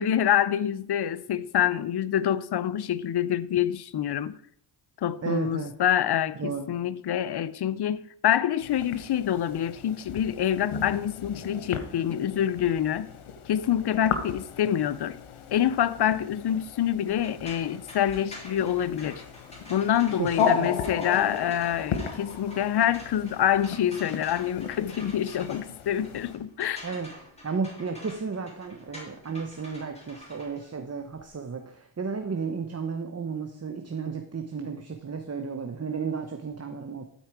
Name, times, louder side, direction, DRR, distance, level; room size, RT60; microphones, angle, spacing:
voice 1, 0.0-4.3 5.0-13.1 13.5-15.2 15.5-19.2 19.7-26.9, left 10 dB, 55° left, 0.6 m, -26 dB
voice 2, 5.2-5.7 6.4-6.7 20.2-20.7 26.8-27.1 27.4-37.0, right 5 dB, 30° right, 0.9 m, -33 dB
sound 1, 8.6-26.3, left 7 dB, 90° left, 1.0 m, -35 dB
sound 2, 17.1-31.3, left 1 dB, 15° left, 3.5 m, -47 dB
12.0 x 4.6 x 4.7 m
cardioid pair, 55°, 49 cm